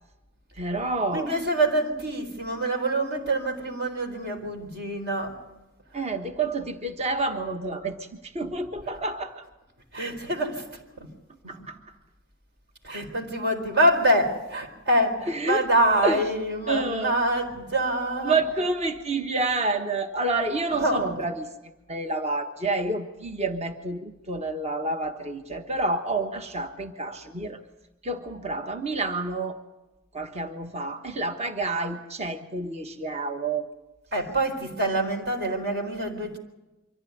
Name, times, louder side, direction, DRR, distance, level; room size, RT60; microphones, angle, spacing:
voice 1, 0.6-1.3 5.9-9.4 11.5-11.8 15.3-15.6 16.0-16.2 16.7-17.1 18.2-21.5 21.9-27.6 28.0-29.5 30.1-33.7, right 2 dB, 30° right, 6 dB, 1.4 m, -29 dB
voice 2, 1.1-5.4 5.9-6.1 9.9-10.7 11.0-11.1 11.4-11.5 12.8-18.4 20.2-20.3 20.7-21.3 34.1-36.4, right 1 dB, 55° right, 4 dB, 4.2 m, -26 dB
25.0 x 15.0 x 9.5 m, 1.0 s
head